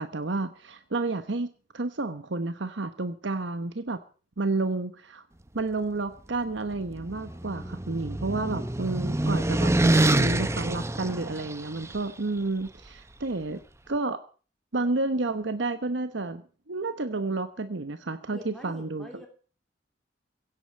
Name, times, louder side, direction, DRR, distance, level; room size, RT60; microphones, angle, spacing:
voice 1, 0.0-4.0 4.4-5.2 5.5-13.6 13.9-14.2 14.7-16.4 16.7-19.3, right 3 dB, 80° right, 10 dB, 1.1 m, -30 dB
sound 1, 6.7-11.9, right 1 dB, 15° right, 0.7 m, -26 dB
voice 2, 18.3-19.3, equal, 5° left, 2 dB, 3.1 m, -46 dB
16.5 x 8.8 x 8.8 m, 0.40 s
head